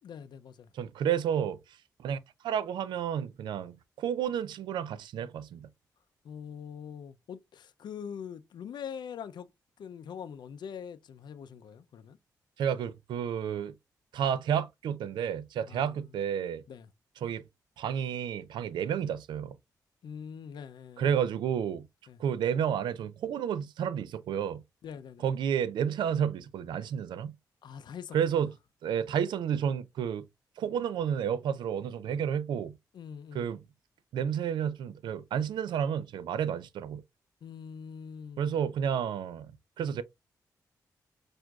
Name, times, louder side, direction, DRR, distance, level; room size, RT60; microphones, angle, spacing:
voice 1, 0.0-0.7 6.2-9.5 9.8-12.2 15.7-15.9 16.7-16.9 20.0-21.1 22.1-22.2 24.8-25.3 27.6-28.5 32.9-33.5 37.4-38.5, left 7 dB, 75° left, 0.5 m, -43 dB
voice 2, 0.7-1.6 2.0-2.2 2.4-5.7 12.6-13.7 14.1-16.6 17.2-17.4 17.8-19.6 21.0-21.9 22.2-24.6 25.2-27.3 28.1-28.5 28.8-30.2 30.6-32.7 33.3-33.6 34.1-37.0 38.4-39.5 39.8-40.0, right 8 dB, 85° right, 0.4 m, -31 dB
6.0 x 2.5 x 2.3 m
cardioid pair, 55°, 8 cm